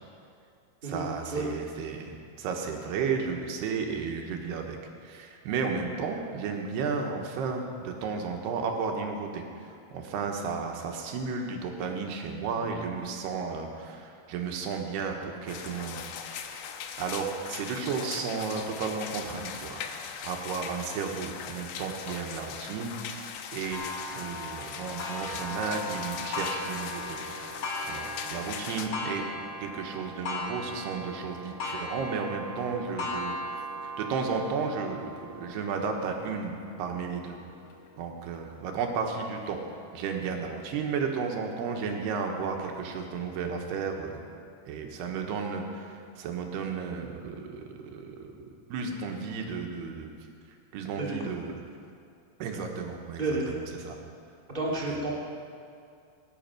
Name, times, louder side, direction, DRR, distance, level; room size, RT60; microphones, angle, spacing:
voice 1, 0.8-4.8 5.0-16.0 17.0-20.0 20.2-23.9 24.1-27.2 27.8-29.2 29.6-33.6 34.0-37.4 38.0-39.6 39.9-44.2 44.7-48.3 48.7-50.1 50.7-51.6 52.4-54.0 54.9-55.0, right 5 dB, 75° right, 2 dB, 3.3 m, -33 dB
sound 1, 15.5-28.9, left 7 dB, 80° left, 2.0 m, -40 dB
Clock, 23.7-39.0 39.6-39.7 40.2-40.3 41.3-41.4, left 2 dB, 60° left, 1.6 m, -38 dB
voice 2, 54.5-55.1, right 2 dB, 20° right, -4 dB, 1.3 m, -30 dB
19.5 x 10.5 x 6.0 m, 2.4 s
omnidirectional pair, 4.9 m